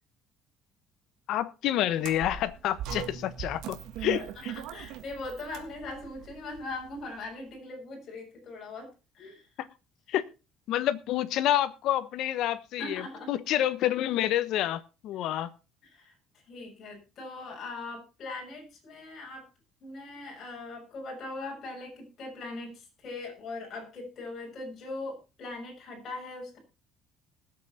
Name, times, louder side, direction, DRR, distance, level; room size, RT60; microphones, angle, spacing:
voice 1, 1.3-4.5 9.6-9.7 10.1-10.2 10.7-13.0 13.3-15.5, left 12 dB, 65° left, 14 dB, 1.1 m, -28 dB
sound 1, 2.0-7.2, right 9 dB, 75° right, 1.7 m, -40 dB
voice 2, 4.1-9.5 12.8-13.4 15.2-15.4 15.8-19.5 19.8-26.6, left 2 dB, 45° left, 0 dB, 6.5 m, -41 dB
20.0 x 7.9 x 4.3 m, 0.30 s
cardioid pair, 135°, 0 cm